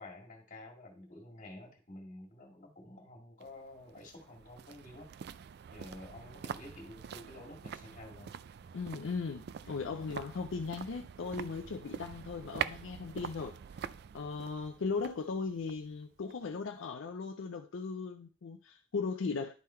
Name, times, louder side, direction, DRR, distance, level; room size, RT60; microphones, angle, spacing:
voice 1, 0.0-5.3 5.7-8.3, left 1 dB, 40° left, 1.9 m, -50 dB
sound 1, 3.4-16.6 16.9-17.0, right 8 dB, 55° right, 0.3 m, -45 dB
voice 2, 8.7-13.8 14.1-19.5, left 4 dB, 75° left, 0.5 m, -38 dB
10.5 x 3.7 x 4.3 m
head